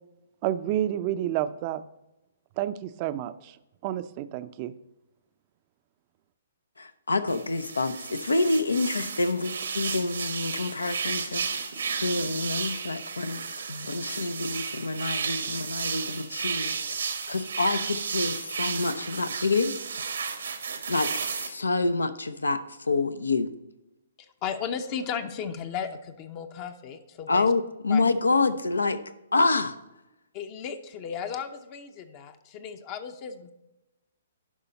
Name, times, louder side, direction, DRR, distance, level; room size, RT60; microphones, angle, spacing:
voice 1, 0.4-1.8 2.6-3.6 3.8-4.7, right 12 dB, 35° right, 13 dB, 0.5 m, -29 dB
voice 2, 6.8-11.7 12.0-16.8 17.3-19.7 20.9-23.5 27.3-29.0 29.3-29.8, left 3 dB, 85° left, 12 dB, 0.7 m, -27 dB
sound 1, 7.3-21.5, right 6 dB, 75° right, 1.1 m, -33 dB
voice 3, 24.2-27.5 27.9-28.0 30.3-33.5, left 7 dB, 35° left, 7 dB, 0.7 m, -35 dB
11.0 x 5.5 x 4.0 m, 0.96 s
hypercardioid pair, 130°, 0 cm